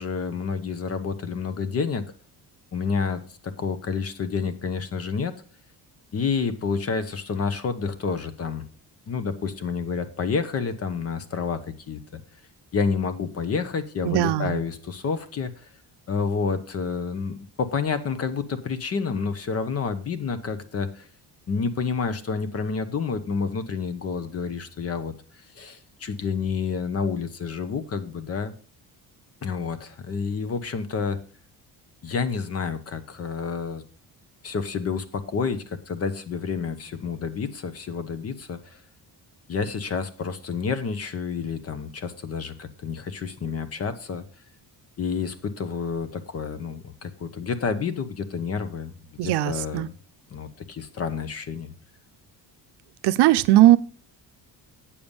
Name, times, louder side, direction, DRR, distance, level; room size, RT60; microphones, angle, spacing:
voice 1, 0.0-2.1 2.7-5.3 6.1-8.6 9.1-12.2 12.7-15.7 16.1-21.1 21.5-25.1 25.5-28.5 29.4-31.2 32.0-33.8 34.4-38.8 39.5-44.2 45.0-49.9 50.3-51.7, left 5 dB, 35° left, 13 dB, 0.9 m, -29 dB
voice 2, 14.0-14.6 49.2-49.9 53.0-53.8, right 14 dB, 80° right, 13 dB, 0.6 m, -18 dB
8.6 x 7.0 x 5.3 m, 0.40 s
cardioid pair, 160°, 40 cm